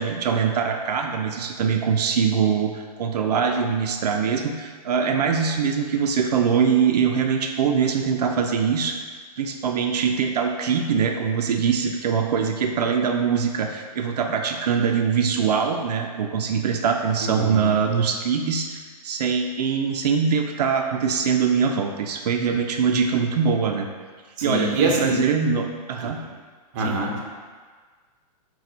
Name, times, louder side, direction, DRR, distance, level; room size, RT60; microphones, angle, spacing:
voice 1, 0.0-9.0 9.4-23.9 24.4-26.2 26.8-27.0, right 6 dB, 80° right, 3 dB, 0.4 m, -23 dB
voice 2, 17.2-17.7 24.4-25.2 26.0-26.1 26.7-27.2, right 2 dB, 30° right, -2 dB, 0.6 m, -24 dB
4.1 x 2.3 x 4.2 m, 1.5 s
hypercardioid pair, 160°, 20 cm